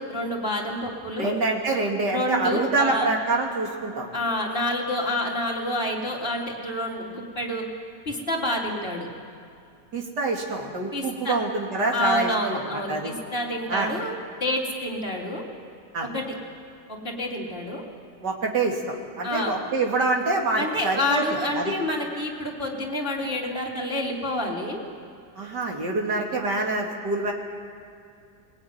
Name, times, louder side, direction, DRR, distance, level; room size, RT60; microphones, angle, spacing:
voice 1, 0.1-1.3 2.1-3.1 4.1-7.6 8.1-9.1 10.9-11.4 11.9-14.1 14.4-15.4 16.1-16.2 16.9-17.8 19.2-19.5 20.6-24.8, left 1 dB, 30° left, -3 dB, 3.8 m, -28 dB
voice 2, 1.2-4.1 9.9-13.1 13.7-13.9 15.9-16.1 18.2-18.8 19.1-21.2 21.5-21.7 25.3-27.3, right 3 dB, 85° right, 0 dB, 3.3 m, -26 dB
21.5 x 20.5 x 9.6 m, 2.5 s
omnidirectional pair, 1.8 m